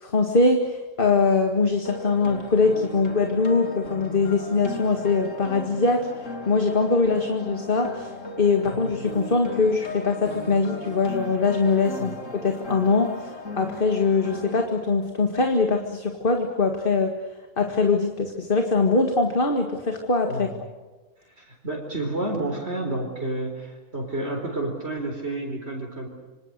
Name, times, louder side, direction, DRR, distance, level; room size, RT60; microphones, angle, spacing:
voice 1, 0.0-6.1 6.5-8.1 8.4-17.1 17.6-20.5, left 4 dB, 40° left, 4 dB, 2.0 m, -22 dB
sound 1, 1.8-14.6, left 2 dB, 70° left, 3.1 m, -36 dB
voice 2, 20.3-20.6 21.4-26.1, right 2 dB, 55° right, 1 dB, 4.7 m, -30 dB
27.5 x 25.5 x 6.6 m, 1.2 s
omnidirectional pair, 1.4 m